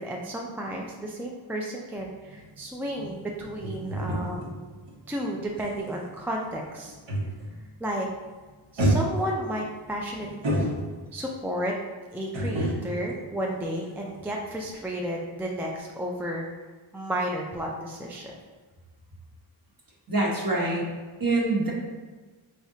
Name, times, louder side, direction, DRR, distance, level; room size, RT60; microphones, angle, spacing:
voice 1, 0.0-4.6 5.1-7.0 7.8-8.1 8.7-10.7 11.1-11.8 12.1-16.5 16.9-18.4, equal, 5° right, -1 dB, 0.3 m, -32 dB
sound 1, 1.9-7.6 7.9-8.3 8.8-11.3 12.3-14.3 14.5-14.7, right 1 dB, 65° right, 1.1 m, -31 dB
voice 2, 20.1-20.9 21.2-21.7, right 2 dB, 45° right, -3 dB, 1.1 m, -25 dB
4.7 x 3.4 x 2.7 m, 1.4 s
wide cardioid pair, 115°, 49 cm